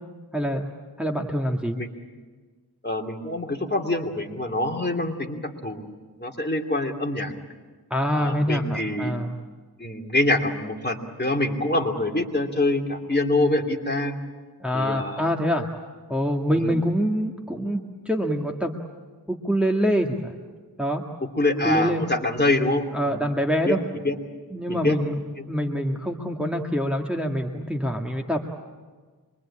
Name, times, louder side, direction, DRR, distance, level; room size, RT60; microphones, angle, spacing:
voice 1, 0.3-0.7 1.0-1.8 7.9-9.3 14.6-15.7 16.1-18.8 19.3-20.3 20.8-21.0 21.6-22.1 22.9-23.8 24.5-25.2 25.5-28.4, equal, 5° right, 0 dB, 1.9 m, -25 dB
voice 2, 2.8-5.9 6.2-7.3 8.1-9.1 9.8-14.1 14.7-15.2 16.5-16.7 21.3-23.2 23.6-23.8 24.0-24.1 24.7-25.0, left 2 dB, 25° left, 1 dB, 2.9 m, -25 dB
25.5 x 23.0 x 8.7 m, 1.4 s
wide cardioid pair, 70°, 38 cm